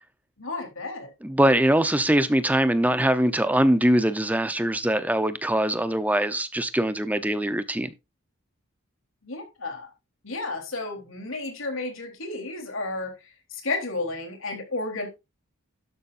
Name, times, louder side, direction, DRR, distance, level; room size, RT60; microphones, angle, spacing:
voice 1, 0.4-1.1 9.2-9.9 10.2-13.1 13.5-15.1, left 2 dB, 65° left, 3.7 m, -32 dB
voice 2, 1.2-7.9, right 1 dB, 5° right, 0.7 m, -22 dB
12.5 x 9.8 x 2.6 m
head